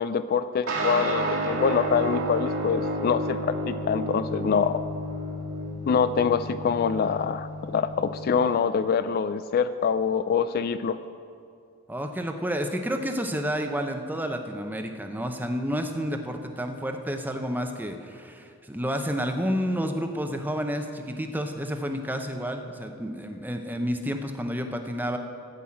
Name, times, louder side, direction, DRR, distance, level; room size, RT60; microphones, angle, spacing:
voice 1, 0.0-4.8 5.9-11.0, left 6 dB, 45° left, 12 dB, 0.3 m, -25 dB
sound 1, 0.7-8.5, right 1 dB, 75° right, 1.9 m, -31 dB
voice 2, 11.9-25.2, equal, 10° right, 5 dB, 0.7 m, -30 dB
13.0 x 5.5 x 8.6 m, 2.4 s
head